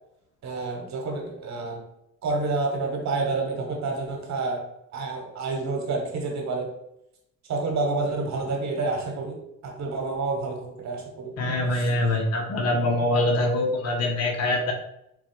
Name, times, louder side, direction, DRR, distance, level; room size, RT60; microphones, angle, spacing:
voice 1, 0.4-1.8 2.2-4.6 4.9-6.7 7.5-9.4 9.6-11.3 11.7-11.8, right 3 dB, 65° right, 1 dB, 1.3 m, -28 dB
voice 2, 11.4-14.7, left 1 dB, 55° left, 2 dB, 0.8 m, -24 dB
4.2 x 2.3 x 4.5 m, 0.81 s
cardioid pair, 90°, 30 cm